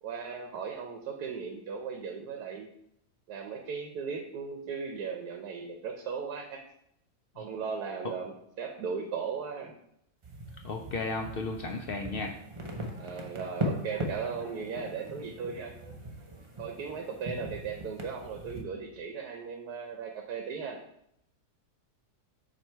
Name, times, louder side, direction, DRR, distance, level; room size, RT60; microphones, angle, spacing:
voice 1, 0.0-2.7 3.3-6.6 7.3-9.7 13.0-15.7 16.6-20.8, right 5 dB, 85° right, 3 dB, 1.2 m, -37 dB
sound 1, 10.2-18.6, equal, 40° right, 0.4 m, -39 dB
voice 2, 10.6-12.3, left 3 dB, 75° left, 3 dB, 0.5 m, -34 dB
7.4 x 3.1 x 4.4 m, 0.75 s
omnidirectional pair, 1.6 m